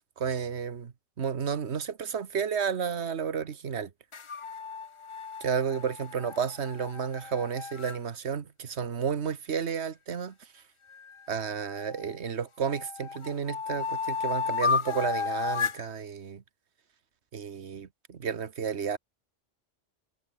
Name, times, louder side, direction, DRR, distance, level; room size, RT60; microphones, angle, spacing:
voice 1, 0.2-3.9 5.4-10.6 11.3-16.4 17.3-19.0, right 7 dB, 60° right, 1.5 m, -32 dB
sound 1, 4.1-8.0 10.9-12.2 12.7-15.9, left 5 dB, 35° left, 0.5 m, -33 dB
omnidirectional pair, 1.3 m